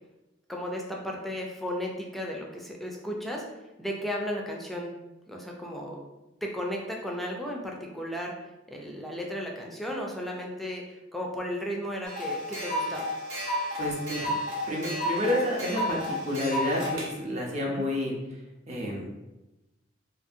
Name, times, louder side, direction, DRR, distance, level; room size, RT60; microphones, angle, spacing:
voice 1, 0.5-3.4 3.8-4.9 5.3-6.0 6.4-8.3 8.7-13.1 17.6-17.9, equal, ahead, -1 dB, 0.4 m, -34 dB
sound 1, 12.1-17.1, equal, 75° right, 0.7 m, -32 dB
voice 2, 13.4-14.3 14.7-18.1 18.7-19.1, left 1 dB, 40° right, -2 dB, 0.6 m, -30 dB
2.6 x 2.4 x 2.6 m, 1.0 s
head